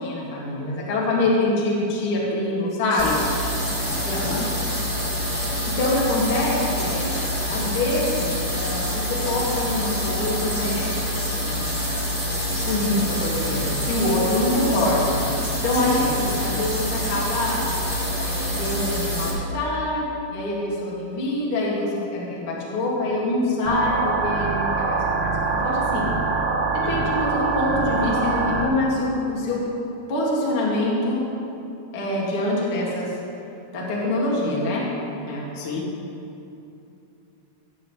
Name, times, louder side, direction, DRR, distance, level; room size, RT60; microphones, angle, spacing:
voice 1, 0.0-3.3 3.8-4.3 5.8-7.1 7.5-11.8 12.5-15.2 15.6-17.7 18.2-20.0 20.3-26.1 26.7-29.6 30.1-31.2 31.9-33.2 33.7-34.8 35.3-35.5, left 1 dB, 40° left, -5 dB, 1.9 m, -25 dB
voice 2, 2.9-3.2 3.9-4.4 14.6-14.7 15.7-16.6 26.8-27.1 35.5-35.9, left 3 dB, 80° left, -2 dB, 4.3 m, -32 dB
sound 1, 3.0-19.3, equal, 20° left, 1.3 m, -26 dB
sound 2, 23.7-28.7, right 4 dB, 80° right, 3.4 m, -24 dB
20.5 x 9.1 x 3.3 m, 2.8 s
omnidirectional pair, 5.9 m